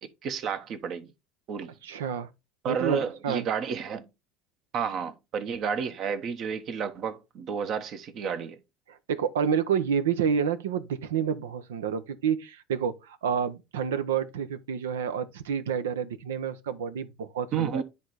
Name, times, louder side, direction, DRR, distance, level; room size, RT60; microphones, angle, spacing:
voice 1, 0.2-1.1 1.5-1.7 2.6-4.0 4.7-8.6 17.5-17.8, right 6 dB, 50° right, 1.2 m, -31 dB
voice 2, 1.8-2.3 2.7-3.4 8.9-17.8, right 7 dB, 85° right, 0.7 m, -29 dB
10.0 x 3.4 x 4.2 m
hypercardioid pair, 80°, 0 cm